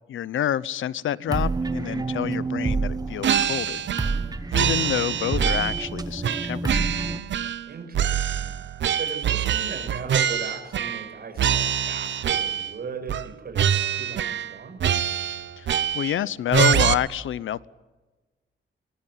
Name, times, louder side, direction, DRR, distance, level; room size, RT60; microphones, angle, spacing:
voice 1, 0.1-3.8 4.5-6.8 15.6-17.7, left 11 dB, 85° left, 20 dB, 0.7 m, -28 dB
sound 1, 1.3-7.2, right 3 dB, 20° right, 1.2 m, -28 dB
sound 2, 3.2-4.2 4.5-5.9 6.2-7.7 7.9-11.1 11.4-12.7 13.1-13.3 13.5-14.5 14.8-16.2 16.5-16.9, right 9 dB, 70° right, 0.9 m, -24 dB
voice 2, 7.7-8.5 8.9-14.8, right 5 dB, 50° right, 4 dB, 6.0 m, -38 dB
23.0 x 20.5 x 9.3 m, 1.2 s
wide cardioid pair, 170°, 20 cm